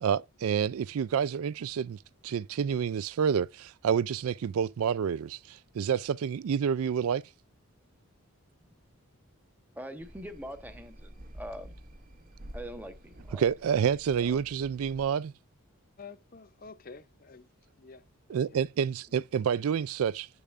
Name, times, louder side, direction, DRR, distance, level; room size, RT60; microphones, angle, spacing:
voice 1, 0.0-7.2 13.4-15.3 18.3-20.3, right 7 dB, 75° right, 0.3 m, -28 dB
voice 2, 9.8-11.8 12.5-13.5 14.2-14.4, equal, 10° right, 1.0 m, -43 dB
sound 1, 10.0-15.1, equal, 40° right, 0.7 m, -49 dB
voice 3, 16.0-17.5 17.8-18.6 19.1-19.2, left 4 dB, 40° left, 0.6 m, -50 dB
10.5 x 6.8 x 2.5 m
head